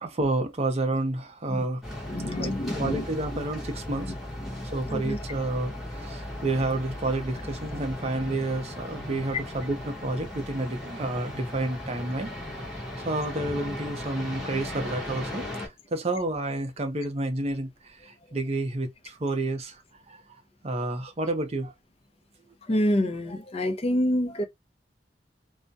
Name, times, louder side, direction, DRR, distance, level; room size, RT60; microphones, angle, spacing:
voice 1, 0.0-1.8 2.4-4.1 4.7-12.3 13.0-19.8 20.1-20.2 20.6-21.7, right 2 dB, 35° right, 0.6 m, -30 dB
sound 1, 1.8-15.7, left 1 dB, ahead, 0.8 m, -37 dB
voice 2, 2.1-3.0 4.4-5.2 22.7-24.4, left 1 dB, 35° left, 0.5 m, -27 dB
2.3 x 2.1 x 2.6 m
head